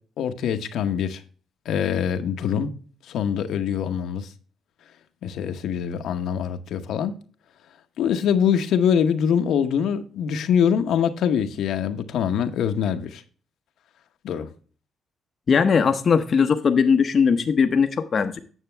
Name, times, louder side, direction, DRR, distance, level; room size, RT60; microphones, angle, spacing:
voice 1, 0.2-1.2 1.6-2.7 3.1-4.3 5.2-7.1 8.0-13.2 14.2-14.5, left 8 dB, 75° left, 0.9 m, -24 dB
voice 2, 15.5-18.4, left 6 dB, 45° left, 0.7 m, -19 dB
9.1 x 6.5 x 3.3 m
cardioid pair, 90°, 0 cm